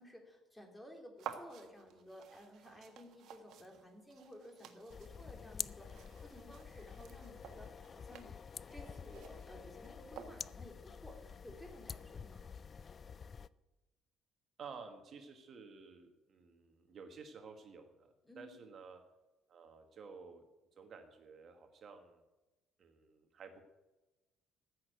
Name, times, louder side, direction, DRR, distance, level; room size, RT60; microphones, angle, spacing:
voice 1, 0.0-8.3 8.7-12.5 18.2-18.6, equal, 5° left, 3 dB, 2.9 m, -55 dB
sound 1, 1.2-10.7, right 8 dB, 65° right, 1.5 m, -53 dB
sound 2, 4.9-13.5, left 6 dB, 35° left, 0.4 m, -48 dB
voice 2, 14.6-19.0 19.5-20.4 20.7-22.2 22.8-23.6, right 5 dB, 45° right, 5 dB, 1.4 m, -53 dB
14.5 x 6.5 x 9.1 m, 1.1 s
cardioid pair, 120°, 0 cm